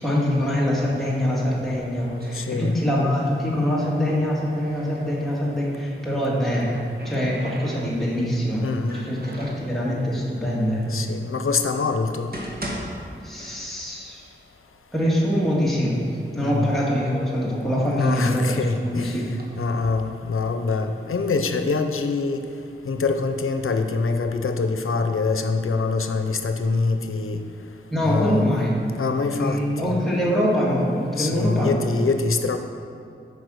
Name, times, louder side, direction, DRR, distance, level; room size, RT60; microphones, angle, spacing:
voice 1, 0.0-6.7 7.0-8.7 8.9-10.8 13.2-14.2 14.9-15.9 16.3-19.3 27.9-28.7 29.3-31.7, equal, ahead, -6 dB, 2.1 m, -24 dB
sound 1, 1.8-3.4 3.7-5.1 6.2-8.2 8.8-9.7 10.5-10.6 11.3-11.4 12.0-14.0 14.3-14.4 15.1-15.2 15.6-16.2 16.8-18.5 19.1-19.4, right 1 dB, 50° right, 1.4 m, -39 dB
voice 2, 2.3-2.7 8.6-9.1 10.9-12.3 16.4-16.7 17.9-19.2 19.6-22.4 22.8-27.4 28.0-28.5 29.0-30.0 31.2-32.6, left 4 dB, 90° left, 7 dB, 0.7 m, -24 dB
9.3 x 5.3 x 6.4 m, 2.5 s
wide cardioid pair, 90°, 21 cm